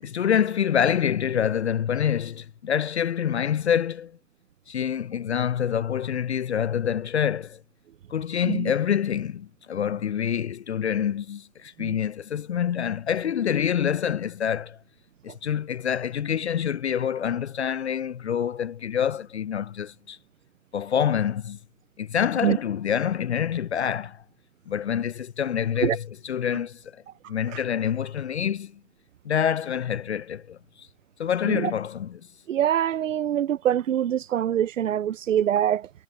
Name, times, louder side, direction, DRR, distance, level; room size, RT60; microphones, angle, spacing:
voice 1, 0.0-4.2 4.7-7.6 8.1-14.8 15.2-20.2 20.7-21.6 22.0-24.2 24.7-27.0 27.3-28.7 29.2-30.9 31.2-32.3, left 8 dB, 55° left, 0.5 m, -26 dB
voice 2, 32.5-35.9, right 10 dB, 70° right, 0.5 m, -24 dB
hypercardioid pair, 155°, 41 cm